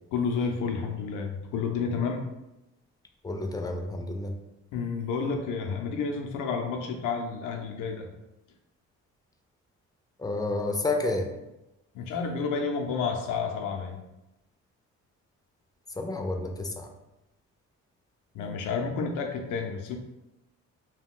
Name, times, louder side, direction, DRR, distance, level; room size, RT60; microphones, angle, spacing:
voice 1, 0.1-2.2 4.7-8.1 11.9-14.0 18.3-20.0, left 5 dB, 90° left, 3 dB, 0.5 m, -30 dB
voice 2, 3.2-4.4 10.2-11.3 16.0-16.9, left 2 dB, 15° left, 4 dB, 0.3 m, -30 dB
2.4 x 2.2 x 3.6 m, 0.96 s
cardioid pair, 90°, 30 cm